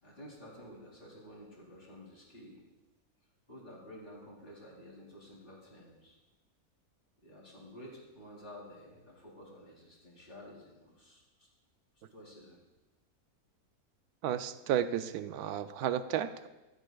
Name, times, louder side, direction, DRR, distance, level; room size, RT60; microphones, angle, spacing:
voice 1, 0.0-2.6 3.5-6.2 7.2-11.5 12.1-12.6, equal, 35° left, -4 dB, 3.7 m, -51 dB
voice 2, 14.2-16.5, right 10 dB, 80° right, 11 dB, 1.1 m, -33 dB
15.5 x 13.5 x 2.4 m, 1.1 s
omnidirectional pair, 1.6 m